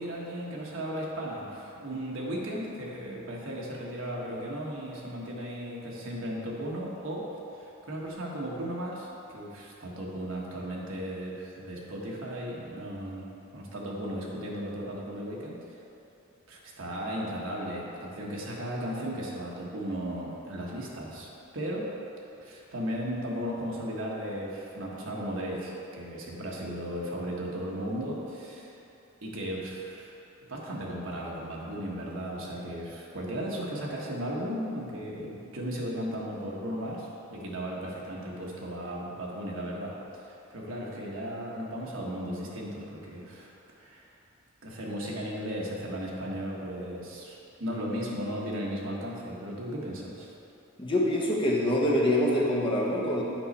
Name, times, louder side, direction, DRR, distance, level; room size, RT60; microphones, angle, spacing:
voice 1, 0.0-7.2 7.5-13.3 13.5-15.5 16.5-21.9 22.4-28.8 29.2-30.1 30.5-40.0 40.3-44.1 44.6-50.3, equal, 70° right, -3 dB, 1.3 m, -36 dB
voice 2, 50.8-53.2, left 1 dB, 25° left, -4 dB, 1.1 m, -25 dB
7.8 x 5.4 x 4.2 m, 2.9 s
head